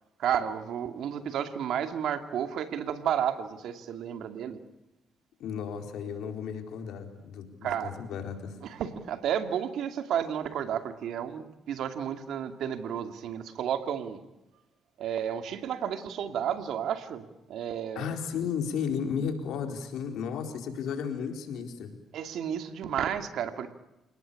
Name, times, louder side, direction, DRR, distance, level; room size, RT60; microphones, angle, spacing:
voice 1, 0.2-4.6 7.6-8.0 8.6-14.2 15.0-18.1 22.1-23.7, right 9 dB, 75° right, 8 dB, 2.5 m, -32 dB
voice 2, 5.4-8.6 17.9-21.9, left 7 dB, 80° left, 5 dB, 4.3 m, -34 dB
29.0 x 19.0 x 8.5 m, 0.98 s
cardioid pair, 90°, 0 cm